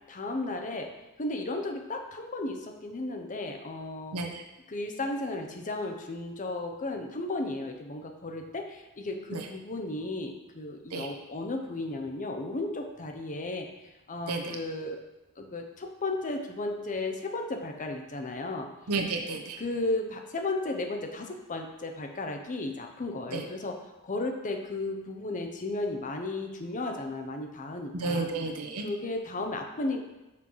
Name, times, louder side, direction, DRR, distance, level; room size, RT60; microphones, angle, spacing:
voice 1, 0.1-0.9 1.2-4.2 4.7-13.7 14.1-15.0 15.4-18.7 19.6-23.8 24.0-28.3 28.8-30.1, left 2 dB, 35° left, 4 dB, 0.8 m, -34 dB
voice 2, 18.9-19.6 23.3-23.4 28.0-28.8, right 3 dB, 80° right, 3 dB, 1.0 m, -31 dB
6.0 x 5.8 x 4.7 m, 1.0 s
head